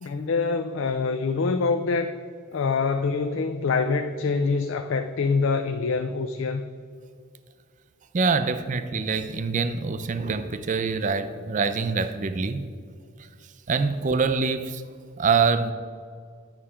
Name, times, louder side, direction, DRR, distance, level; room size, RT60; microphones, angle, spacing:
voice 1, 0.0-2.1 2.5-6.7, left 4 dB, 65° left, 0.4 m, -25 dB
voice 2, 8.1-12.7 13.2-13.3 13.7-14.8 15.2-15.7, right 4 dB, 35° right, 0.4 m, -25 dB
9.6 x 4.9 x 5.6 m
head